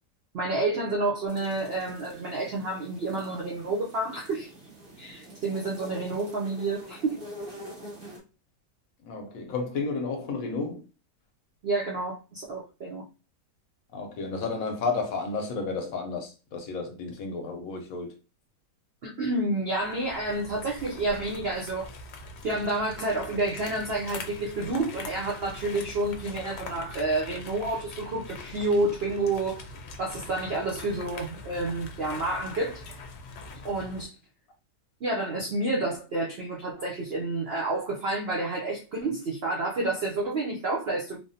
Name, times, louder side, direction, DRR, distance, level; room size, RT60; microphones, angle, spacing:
voice 1, 0.3-4.5 5.0-7.2 11.6-13.1 19.0-21.9 22.4-29.6 30.0-32.8 33.6-34.1 35.0-41.2, right 2 dB, 80° right, 0.5 m, -29 dB
sound 1, 1.3-8.2, equal, 40° right, 1.1 m, -45 dB
voice 2, 9.1-10.8 13.9-18.1, left 4 dB, 65° left, 1.0 m, -32 dB
sound 2, 19.7-34.1, left 3 dB, 85° left, 1.2 m, -43 dB
3.4 x 2.0 x 2.6 m
omnidirectional pair, 1.8 m